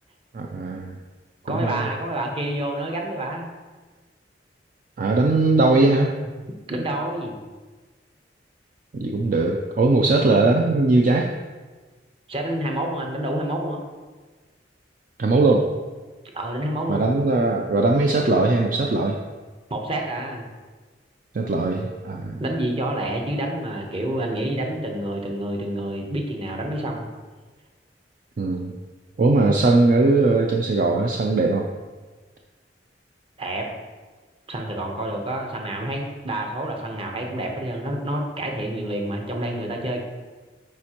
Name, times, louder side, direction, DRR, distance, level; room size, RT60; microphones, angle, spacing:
voice 1, 0.3-0.9 1.5-1.9 5.0-6.2 8.9-11.3 15.2-15.7 16.9-19.2 21.3-22.4 28.4-28.7 29.2-31.7, right 2 dB, 50° right, 1 dB, 0.4 m, -20 dB
voice 2, 1.5-3.5 6.7-7.3 12.3-13.8 16.3-17.1 19.7-20.4 22.4-27.0 33.4-33.7 34.5-40.0, right 1 dB, 30° right, 1 dB, 0.9 m, -28 dB
9.4 x 4.2 x 2.9 m, 1.3 s
head